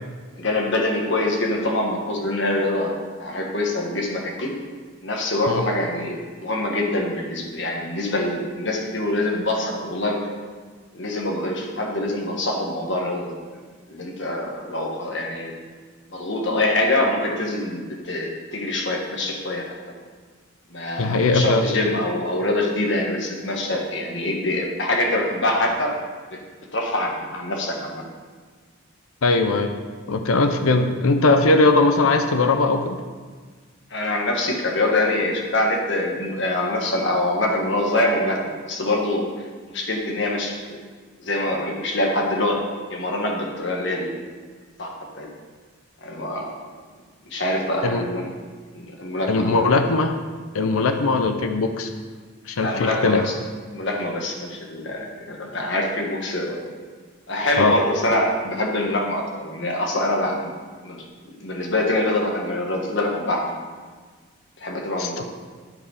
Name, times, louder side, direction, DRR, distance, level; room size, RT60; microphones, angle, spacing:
voice 1, 0.3-4.5 5.0-10.2 10.9-13.3 13.9-15.5 16.1-19.6 20.7-26.0 26.3-26.4 26.7-28.0 33.9-38.4 38.6-39.3 39.7-40.8 41.2-42.6 42.9-44.1 44.8-45.3 46.0-46.6 47.2-48.3 48.7-49.6 50.7-50.9 52.6-53.3 53.7-56.7 57.3-60.5 60.8-61.0 61.4-63.5 64.6-65.2, left 1 dB, 55° left, 0 dB, 1.5 m, -24 dB
voice 2, 21.0-21.6 29.2-29.7 30.1-33.0 47.8-48.0 49.3-50.1 50.5-51.9 52.5-53.2 57.6-57.8 65.0-65.2, left 3 dB, 90° left, 6 dB, 0.7 m, -19 dB
12.0 x 5.1 x 4.9 m, 1.5 s
head